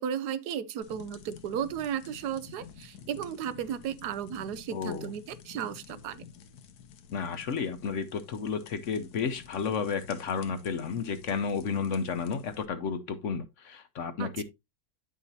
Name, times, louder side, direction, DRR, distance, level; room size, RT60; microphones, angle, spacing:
voice 1, 0.0-6.2 14.2-14.4, right 9 dB, 85° right, 1.3 m, -34 dB
sound 1, 0.8-12.7, left 7 dB, 85° left, 1.4 m, -51 dB
voice 2, 4.7-5.1 7.1-14.4, left 6 dB, 60° left, 1.0 m, -32 dB
9.8 x 6.1 x 2.7 m
omnidirectional pair, 1.7 m